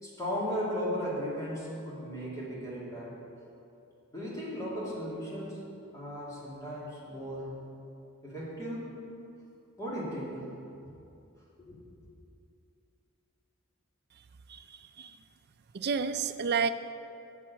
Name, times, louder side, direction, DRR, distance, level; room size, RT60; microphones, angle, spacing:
voice 1, 0.0-3.2 4.1-5.6 5.9-7.5 8.2-8.9 9.8-10.5 11.6-11.8, equal, 15° left, -7 dB, 2.8 m, -36 dB
voice 2, 15.7-16.7, right 6 dB, 50° right, 9 dB, 0.4 m, -29 dB
7.7 x 7.1 x 8.2 m, 2.7 s
head